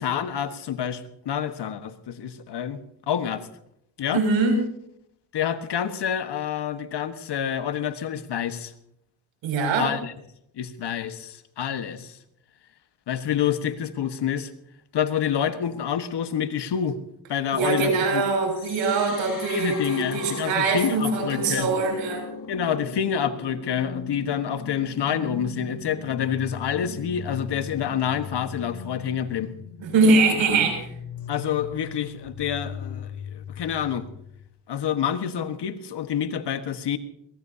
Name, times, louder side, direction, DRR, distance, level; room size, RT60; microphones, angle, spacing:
voice 1, 0.0-2.8 3.1-3.5 4.0-4.2 5.3-8.7 9.8-10.1 10.6-12.2 13.1-14.5 14.9-17.0 17.3-18.2 19.5-21.7 22.5-29.5 31.3-34.0 34.7-37.0, left 9 dB, 60° left, 10 dB, 1.5 m, -28 dB
voice 2, 4.1-4.6 9.4-9.9 17.5-22.2 29.8-30.9, right 3 dB, 80° right, 2 dB, 6.8 m, -22 dB
sound 1, 18.5-34.5, left 5 dB, 45° left, 2.7 m, -38 dB
22.0 x 20.0 x 2.8 m, 0.75 s
supercardioid pair, 70°, 46 cm